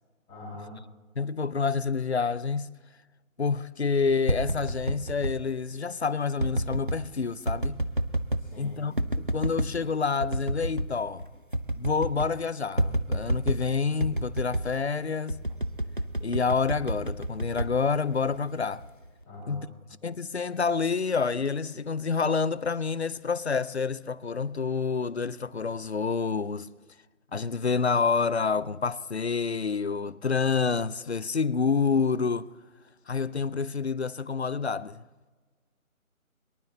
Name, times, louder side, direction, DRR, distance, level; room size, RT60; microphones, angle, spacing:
voice 1, 0.3-0.7 8.4-8.8 19.2-19.6, left 2 dB, 5° left, 2.4 m, -43 dB
voice 2, 1.2-2.7 3.4-7.8 8.6-8.9 9.3-11.3 11.7-15.4 16.2-18.8 19.5-19.7 20.0-26.7 27.3-32.5 33.1-35.0, left 5 dB, 50° left, 0.5 m, -28 dB
sound 1, 4.0-5.4 6.4-7.0 7.5-8.5 9.0-9.7 10.2-10.9 11.2-11.3 11.5-12.4 12.8-13.7 14.0-14.7 15.3-18.4 18.8-19.2, right 1 dB, 40° right, 0.5 m, -29 dB
22.5 x 12.0 x 3.2 m
figure-of-eight pair, 175°, 42 cm